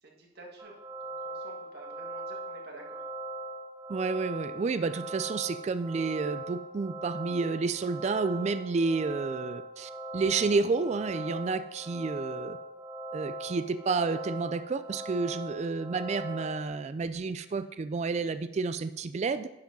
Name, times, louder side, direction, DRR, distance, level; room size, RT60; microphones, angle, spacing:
voice 1, 0.0-3.0, right 2 dB, 55° right, -1 dB, 1.7 m, -50 dB
sound 1, 0.6-16.7, right 1 dB, 15° right, 1.0 m, -40 dB
voice 2, 3.9-12.6 13.1-19.5, right 4 dB, 35° right, 12 dB, 0.3 m, -30 dB
10.5 x 4.7 x 5.3 m, 0.93 s
head